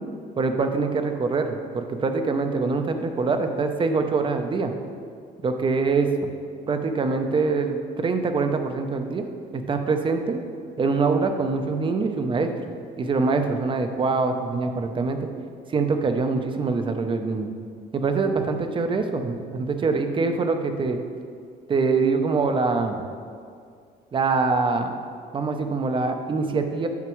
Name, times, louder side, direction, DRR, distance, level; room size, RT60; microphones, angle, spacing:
voice 1, 0.4-4.7 5.4-6.1 6.7-10.4 10.8-12.5 13.0-15.3 15.7-17.5 17.9-21.0 21.7-23.0 24.1-24.9 25.3-26.9, right 4 dB, 30° right, 6 dB, 0.6 m, -24 dB
9.3 x 5.9 x 3.1 m, 2.3 s
cardioid pair, 110°, 17 cm